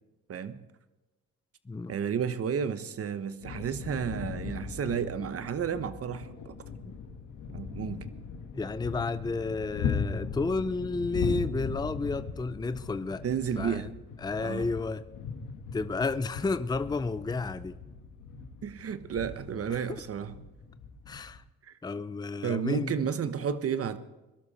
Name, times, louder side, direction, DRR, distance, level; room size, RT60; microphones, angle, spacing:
voice 1, 0.3-0.6 1.9-6.6 7.5-8.1 13.2-13.9 14.4-14.7 18.6-20.4 21.6-21.8 22.4-24.0, right 7 dB, 50° right, 1.2 m, -32 dB
sound 1, 3.4-21.4, left 6 dB, 90° left, 1.9 m, -38 dB
voice 2, 8.5-13.2 13.6-13.9 14.2-15.0 15.7-17.8 21.1-21.4 21.8-22.9, left 3 dB, 15° left, 0.6 m, -31 dB
22.0 x 12.5 x 4.3 m
cardioid pair, 90°, 30 cm